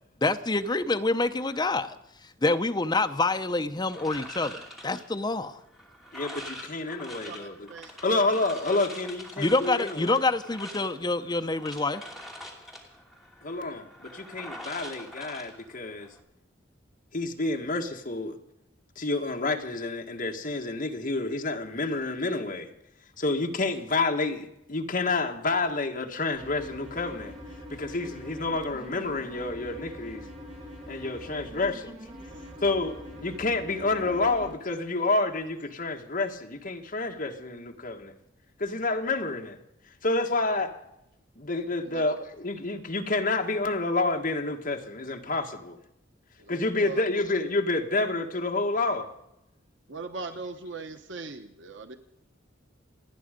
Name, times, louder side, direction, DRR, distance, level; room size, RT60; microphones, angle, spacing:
voice 1, 0.2-2.0 2.4-5.6 9.4-12.0, left 2 dB, 20° left, 0.7 m, -26 dB
sound 1, 3.9-16.2, equal, ahead, 2.7 m, -44 dB
voice 2, 6.1-7.7 8.0-10.2 13.4-16.1 17.1-18.4 19.0-22.7 23.2-27.4 27.7-30.2 30.9-32.0 32.6-38.1 38.6-39.6 40.0-40.7 41.4-45.8 46.5-49.1, left 2 dB, 45° left, 1.7 m, -29 dB
voice 3, 7.3-8.2 32.3-32.5 41.8-42.0 46.4-47.1 49.9-52.0, right 3 dB, 70° right, 1.0 m, -40 dB
sound 2, 26.3-34.5, equal, 30° right, 4.7 m, -43 dB
28.5 x 9.7 x 5.2 m
head